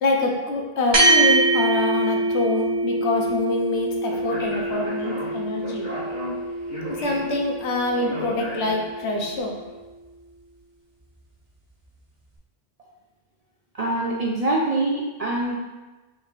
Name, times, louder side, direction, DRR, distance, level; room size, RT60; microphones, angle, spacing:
voice 1, 0.0-5.9 7.0-9.5, left 2 dB, 75° left, 1 dB, 1.0 m, -25 dB
sound 1, 0.9-9.6, right 2 dB, 25° right, 1.4 m, -25 dB
Speech, 4.1-9.1, left 1 dB, 40° left, 1.4 m, -35 dB
voice 2, 13.7-15.6, right 2 dB, 55° right, -3 dB, 0.4 m, -24 dB
5.5 x 3.5 x 2.4 m, 1.2 s
omnidirectional pair, 1.2 m